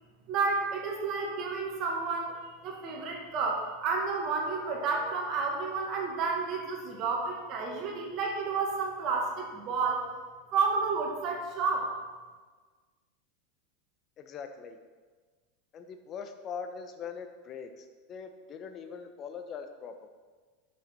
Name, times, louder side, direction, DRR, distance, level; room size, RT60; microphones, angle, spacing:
voice 1, 0.3-10.0 10.5-11.9, right 4 dB, 45° right, 0 dB, 2.0 m, -31 dB
voice 2, 14.2-14.8 15.7-20.2, left 6 dB, 40° left, 7 dB, 1.2 m, -42 dB
12.0 x 7.0 x 4.5 m, 1.4 s
hypercardioid pair, 85°, 0 cm